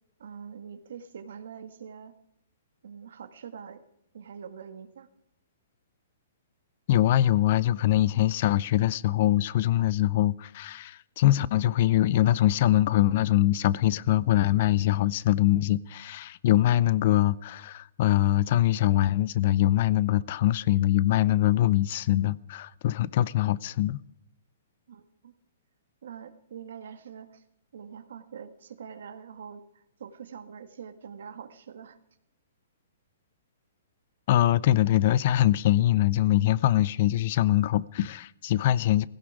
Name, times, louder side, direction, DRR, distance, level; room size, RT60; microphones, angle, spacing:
voice 1, 0.2-2.1 2.8-3.8 4.1-5.1 24.9-25.3 26.0-27.4 27.7-32.0, right 7 dB, 70° right, 1.6 m, -44 dB
voice 2, 6.9-24.0 34.3-39.1, left 13 dB, 45° left, 0.5 m, -23 dB
16.5 x 16.5 x 4.9 m
hypercardioid pair, 155°, 0 cm